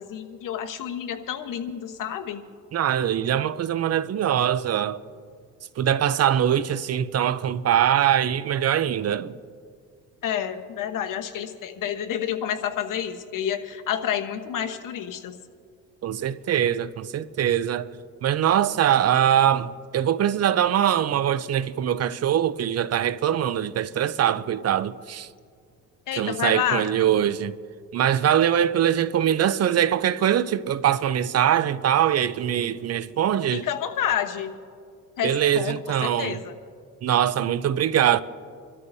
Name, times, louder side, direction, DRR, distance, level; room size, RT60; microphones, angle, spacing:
voice 1, 0.0-2.4 10.2-15.4 26.1-26.9 33.5-34.5 35.2-36.5, left 9 dB, 70° left, 1.2 m, -29 dB
voice 2, 2.7-5.0 5.8-9.3 16.0-17.9 18.2-25.3 26.1-27.6 27.9-33.6 35.2-36.4 37.0-38.2, right 10 dB, 50° right, 0.6 m, -22 dB
29.5 x 13.0 x 2.7 m
cardioid pair, 95°, 33 cm